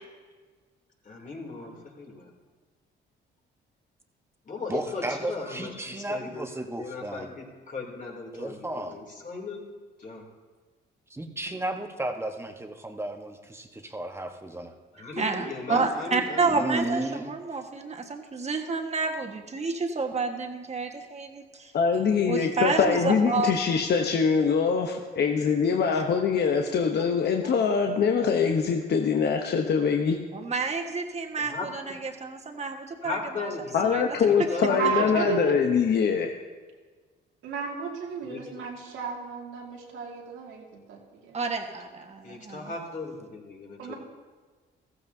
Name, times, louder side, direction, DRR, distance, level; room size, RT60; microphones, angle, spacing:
voice 1, 1.0-2.3 4.4-9.6 10.0-10.2 14.9-17.1 22.8-23.7 31.4-31.7 33.0-35.8 38.2-38.4 42.2-43.9, left 3 dB, 40° left, -1 dB, 2.9 m, -37 dB
voice 2, 4.7-7.3 8.3-9.0 11.1-14.7 16.4-17.3, right 1 dB, 15° right, 4 dB, 1.2 m, -34 dB
voice 3, 15.2-21.7 22.2-23.8 25.9-26.0 30.3-33.2 33.8-34.5 41.3-42.7, right 4 dB, 35° right, 3 dB, 1.5 m, -30 dB
voice 4, 21.7-30.2 33.7-36.3, left 6 dB, 55° left, 3 dB, 1.0 m, -23 dB
voice 5, 34.7-35.5 37.4-41.4 43.8-43.9, right 6 dB, 85° right, -1 dB, 2.2 m, -33 dB
14.5 x 14.5 x 2.8 m, 1.4 s
cardioid pair, 90°, 20 cm